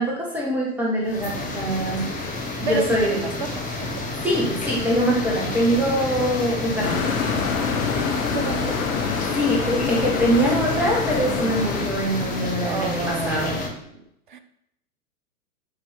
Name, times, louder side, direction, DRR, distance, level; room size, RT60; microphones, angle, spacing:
voice 1, 0.0-2.0 2.6-3.2 4.2-7.1 9.3-13.6, equal, 5° right, -4 dB, 1.7 m, -23 dB
sound 1, 1.0-13.7, left 2 dB, 15° left, 1.6 m, -30 dB
voice 2, 2.7-4.0 7.9-9.3 12.6-14.0 14.3-14.4, right 5 dB, 35° right, 10 dB, 0.4 m, -32 dB
sound 2, 6.8-11.9, left 6 dB, 60° left, 1.0 m, -26 dB
8.7 x 4.8 x 3.8 m, 0.78 s
figure-of-eight pair, 105°, 46 cm